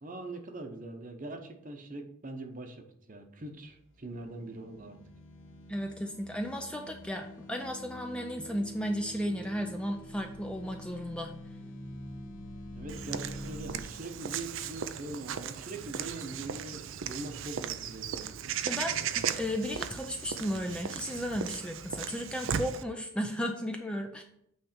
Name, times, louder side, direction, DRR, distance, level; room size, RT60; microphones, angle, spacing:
voice 1, 0.0-5.0 12.7-18.3, right 2 dB, 40° right, 4 dB, 0.9 m, -42 dB
sound 1, 4.0-13.8, equal, 65° left, 1.0 m, -46 dB
voice 2, 5.7-11.3 18.6-24.2, equal, 5° left, 3 dB, 0.4 m, -34 dB
Walk footsteps / Bird vocalization bird call bird song, 12.9-22.8, right 8 dB, 60° right, 0.4 m, -37 dB
8.7 x 3.3 x 5.0 m, 0.73 s
head